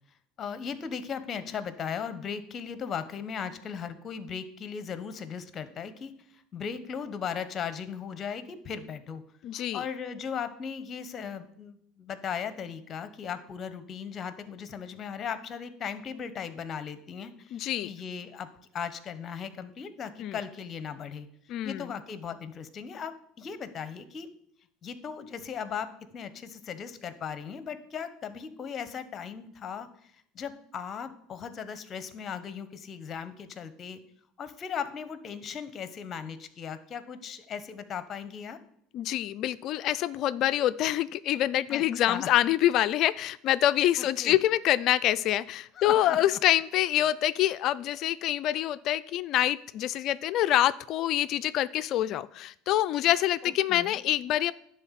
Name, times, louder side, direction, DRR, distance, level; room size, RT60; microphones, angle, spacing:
voice 1, 0.4-9.2 9.5-18.5 18.7-21.3 21.6-24.3 24.8-29.9 30.3-34.0 34.4-38.6 41.7-42.3 44.0-44.4 45.7-46.4 53.4-54.0, left 7 dB, 40° left, 13 dB, 1.0 m, -37 dB
voice 2, 9.4-9.8 17.5-17.9 20.2-20.4 21.5-21.9 38.9-54.5, left 13 dB, 55° left, 15 dB, 0.3 m, -26 dB
10.5 x 3.8 x 7.4 m, 0.70 s
supercardioid pair, 90°, 0 cm